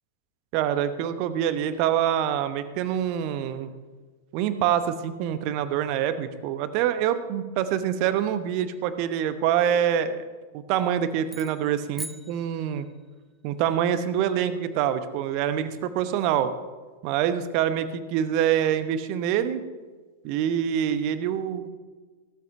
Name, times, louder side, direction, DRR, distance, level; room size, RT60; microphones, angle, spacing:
voice 1, 0.5-3.7 4.3-10.2 10.5-12.9 13.4-16.5 17.0-19.6 20.2-21.8, right 9 dB, 45° right, 11 dB, 0.9 m, -25 dB
sound 1, 11.3-13.2, right 1 dB, 5° right, 0.5 m, -42 dB
16.5 x 13.0 x 2.6 m, 1.3 s
figure-of-eight pair, 90°, 0 cm